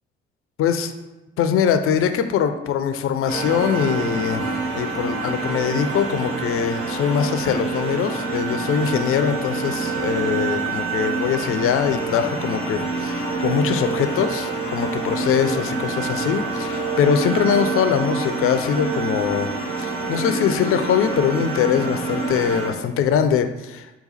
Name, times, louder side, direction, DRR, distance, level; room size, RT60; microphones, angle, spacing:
voice 1, 0.6-0.9 1.4-19.5 19.8-24.0, left 8 dB, 45° left, 8 dB, 0.5 m, -22 dB
sound 1, 3.3-22.7, right 3 dB, 70° right, 0.9 m, -26 dB
5.0 x 2.3 x 4.0 m, 1.0 s
figure-of-eight pair, 45°, 30 cm